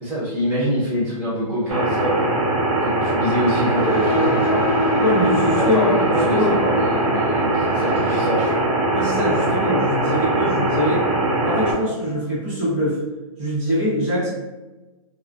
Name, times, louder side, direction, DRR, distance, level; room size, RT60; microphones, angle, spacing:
voice 1, 0.0-2.3 2.8-4.6 5.4-8.7, equal, 10° right, -8 dB, 0.5 m, -25 dB
sound 1, 1.7-11.7, right 2 dB, 85° right, 0.9 m, -21 dB
sound 2, 3.7-11.0, left 2 dB, 45° left, 0.4 m, -28 dB
voice 2, 5.0-6.6 8.9-11.0 11.3-13.0 13.4-14.3, left 1 dB, 50° right, -12 dB, 1.0 m, -23 dB
2.3 x 2.3 x 2.4 m, 1.2 s
hypercardioid pair, 170°, 18 cm